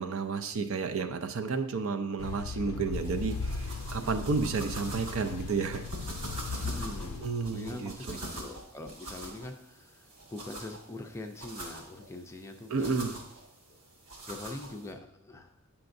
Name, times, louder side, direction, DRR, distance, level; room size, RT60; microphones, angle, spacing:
voice 1, 0.0-5.9 7.2-7.9 12.7-13.2, right 4 dB, 65° right, 7 dB, 0.5 m, -31 dB
sound 1, 2.2-7.2, left 4 dB, 75° left, 0.4 m, -37 dB
sound 2, 2.9-14.9, right 1 dB, 80° right, 1.7 m, -44 dB
voice 2, 6.6-13.2 14.3-15.6, left 2 dB, 15° left, 4 dB, 0.4 m, -43 dB
8.7 x 5.8 x 2.6 m, 0.73 s
head